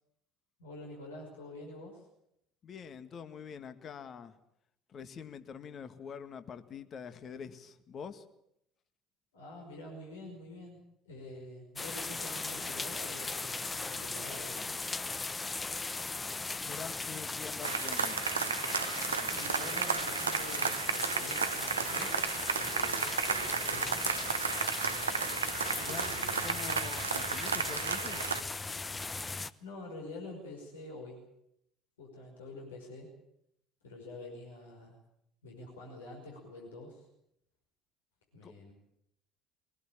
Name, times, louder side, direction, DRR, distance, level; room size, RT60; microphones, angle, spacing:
voice 1, 0.6-2.1 9.3-10.8 11.1-14.7 19.3-22.3 22.5-24.1 25.7-26.5 29.6-31.2 32.0-33.1 33.8-35.0 35.4-37.1 38.3-38.7, left 2 dB, 75° left, 0 dB, 5.4 m, -47 dB
voice 2, 2.6-4.4 4.9-8.3 16.6-18.2 25.8-26.1 26.4-28.2 38.4-38.5, left 7 dB, 40° left, 10 dB, 1.8 m, -45 dB
sound 1, 11.8-29.5, left 3 dB, 20° left, 1.1 m, -38 dB
sound 2, 17.6-28.4, right 6 dB, 85° right, 0.8 m, -33 dB
23.0 x 19.5 x 8.8 m, 0.77 s
figure-of-eight pair, 60°, 0 cm